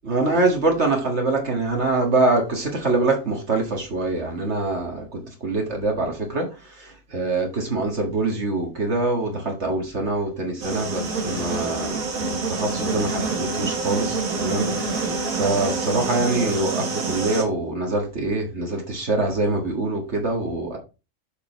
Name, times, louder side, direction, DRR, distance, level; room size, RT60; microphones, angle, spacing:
voice 1, 0.0-20.8, right 2 dB, 55° right, 1.9 m, -24 dB
sound 1, 10.6-17.4, right 3 dB, 80° right, 2.0 m, -27 dB
6.9 x 5.0 x 4.4 m
omnidirectional pair, 1.4 m